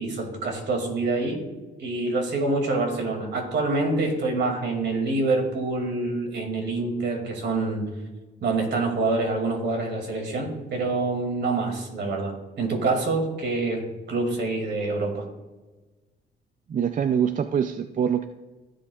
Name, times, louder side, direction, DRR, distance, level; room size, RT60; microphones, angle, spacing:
voice 1, 0.0-1.4 1.8-7.8 8.4-15.2, right 3 dB, 60° right, 2 dB, 2.5 m, -26 dB
voice 2, 16.7-18.3, right 8 dB, 40° right, 9 dB, 0.4 m, -24 dB
16.0 x 7.7 x 2.4 m, 1.2 s
cardioid pair, 90°, 20 cm